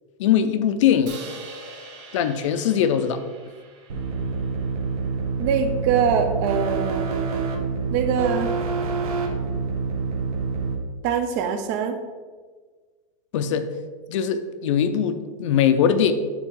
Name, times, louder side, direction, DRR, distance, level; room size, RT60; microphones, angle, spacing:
voice 1, 0.2-1.2 2.1-3.2 13.3-13.7 14.1-16.1, left 8 dB, 55° left, 10 dB, 0.6 m, -21 dB
Crash cymbal, 1.1-5.2, right 3 dB, 55° right, 1.8 m, -44 dB
sound 1, 3.9-10.8, right 4 dB, 80° right, 1.3 m, -27 dB
voice 2, 5.4-7.2 7.9-8.5 11.0-12.0, right 7 dB, 30° right, 7 dB, 0.5 m, -23 dB
8.9 x 4.1 x 3.8 m, 1.5 s
supercardioid pair, 180°, 19 cm